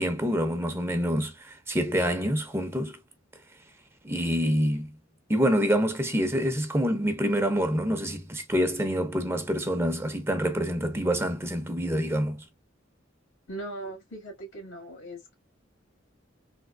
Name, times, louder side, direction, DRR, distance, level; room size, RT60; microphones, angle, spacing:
voice 1, 0.0-3.0 4.0-4.9 5.3-12.4, equal, 10° right, 0.5 m, -26 dB
voice 2, 13.5-15.4, right 1 dB, 90° left, 1.9 m, -39 dB
3.4 x 2.8 x 2.2 m
head